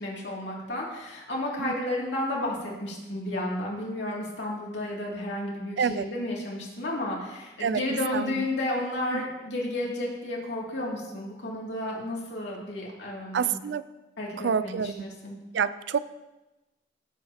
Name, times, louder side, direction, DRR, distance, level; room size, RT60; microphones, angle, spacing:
voice 1, 0.0-13.6 14.2-15.4, left 1 dB, 70° left, -3 dB, 2.6 m, -32 dB
voice 2, 8.1-8.4 9.1-9.2 13.3-13.8 14.4-15.0 15.5-16.0, right 6 dB, 70° right, 15 dB, 0.4 m, -27 dB
14.5 x 7.7 x 2.9 m, 1.0 s
head